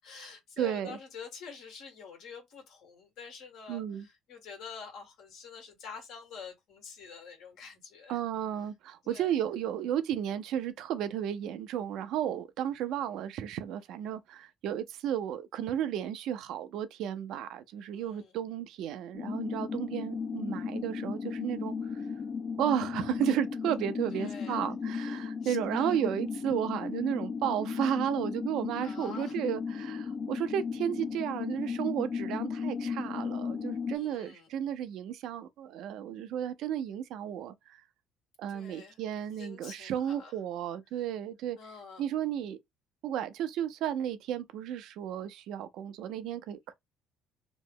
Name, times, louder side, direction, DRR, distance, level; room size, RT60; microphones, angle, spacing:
voice 1, 0.0-8.2 9.0-9.3 17.9-18.3 24.1-24.7 25.2-26.0 28.8-29.3 33.9-34.5 38.5-39.0 39.4-40.3 41.6-42.0, left 6 dB, 70° left, 1.5 m, -47 dB
voice 2, 0.6-1.0 3.7-4.1 8.1-21.7 22.6-37.5 38.4-41.6 42.0-42.6 43.0-46.7, right 10 dB, 75° right, 0.5 m, -33 dB
sound 1, 19.1-34.0, left 5 dB, 45° left, 0.6 m, -35 dB
3.0 x 2.0 x 3.6 m
supercardioid pair, 85°, 0 cm